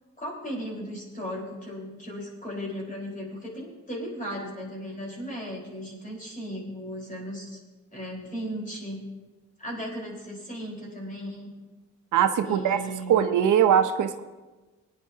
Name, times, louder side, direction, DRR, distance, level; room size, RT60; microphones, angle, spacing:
voice 1, 0.2-7.6 7.9-9.0 9.6-11.5 12.4-13.3, equal, 25° left, -2 dB, 4.4 m, -36 dB
voice 2, 12.1-12.8 13.1-14.2, right 9 dB, 80° right, 8 dB, 0.8 m, -21 dB
22.0 x 9.6 x 2.8 m, 1.2 s
cardioid pair, 115°, 30 cm